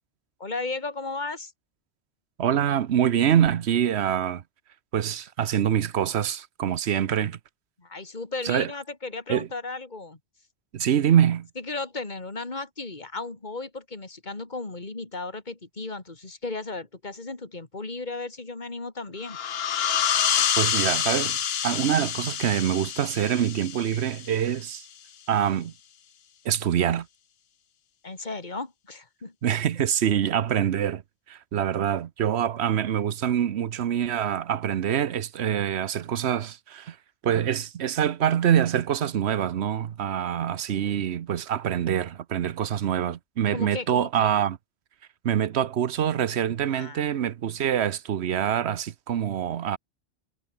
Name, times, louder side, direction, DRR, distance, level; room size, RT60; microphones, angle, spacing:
voice 1, 0.4-1.5 7.8-10.2 11.6-19.4 28.0-29.3 43.5-44.3 46.7-47.3, left 3 dB, 45° left, 2.8 m, -35 dB
voice 2, 2.4-4.4 4.9-7.4 8.4-8.7 9.3-9.5 10.7-11.5 20.6-21.4 21.6-24.8 25.3-25.7 26.4-27.1 29.4-31.0 31.3-37.0 37.2-44.6 45.2-49.8, right 9 dB, 90° right, 1.1 m, -25 dB
sound 1, 19.2-24.6, left 9 dB, 75° left, 1.1 m, -27 dB
omnidirectional pair, 1.1 m